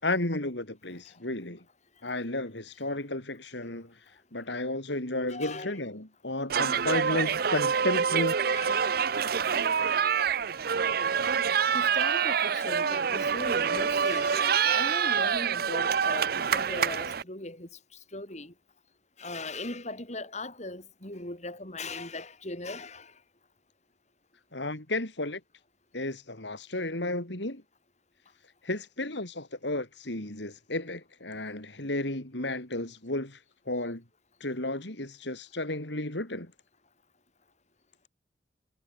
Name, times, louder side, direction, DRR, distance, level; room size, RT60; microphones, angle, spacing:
voice 1, 0.0-1.6 2.0-8.3 24.5-25.4 25.9-27.6 28.6-34.0 34.4-36.5, left 2 dB, 70° left, 4.2 m, -33 dB
voice 2, 5.3-5.9 8.5-9.1 11.2-11.4 11.7-17.7 18.1-18.5 19.2-23.1, left 2 dB, 40° left, 7.4 m, -39 dB
sound 1, 6.5-17.2, right 7 dB, 55° right, 0.6 m, -26 dB
head